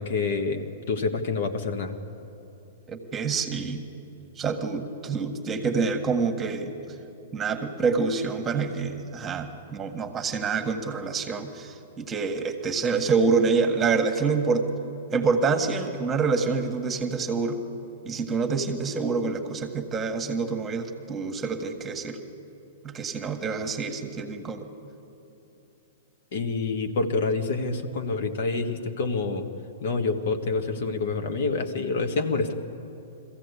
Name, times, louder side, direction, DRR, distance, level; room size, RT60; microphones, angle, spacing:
voice 1, 0.0-2.0 26.3-29.5 29.8-32.5, left 3 dB, 60° left, 6 dB, 1.5 m, -27 dB
voice 2, 2.9-3.9 4.4-6.7 7.3-14.7 15.1-17.6 18.1-22.2 22.8-24.7, right 4 dB, 20° right, 6 dB, 1.6 m, -27 dB
21.5 x 15.0 x 8.4 m, 2.9 s
hypercardioid pair, 125°, 0 cm